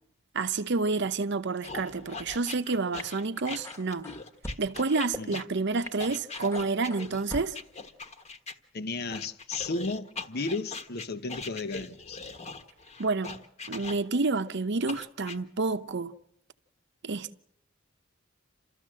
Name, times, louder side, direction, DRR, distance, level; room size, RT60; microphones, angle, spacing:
voice 1, 0.3-4.1 4.6-7.6 13.0-13.4 13.7-16.1 17.0-17.4, right 3 dB, 60° right, 0.8 m, -29 dB
sound 1, 1.6-8.6 9.1-14.3 14.9-15.4, left 4 dB, 35° left, 1.4 m, -41 dB
sound 2, 3.0-3.1 3.5-4.6 5.1-5.2 5.9-6.0 6.3-7.6, left 1 dB, 15° left, 1.4 m, -41 dB
voice 2, 8.7-12.2, left 3 dB, 55° left, 0.9 m, -34 dB
29.0 x 13.5 x 7.6 m
head